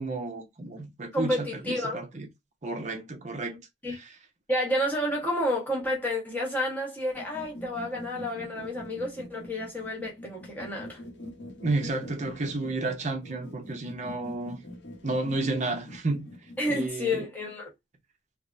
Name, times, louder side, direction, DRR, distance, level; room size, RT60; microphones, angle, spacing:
voice 1, 0.0-2.3 2.6-3.6 11.6-14.6 15.0-16.3 16.7-17.2, right 2 dB, 40° right, 0.6 m, -31 dB
voice 2, 1.1-2.0 3.8-4.0 4.5-11.0 16.6-17.7, left 1 dB, 10° left, 1.1 m, -30 dB
sound 1, 7.1-16.9, left 1 dB, 70° left, 0.8 m, -44 dB
3.3 x 2.0 x 2.5 m
head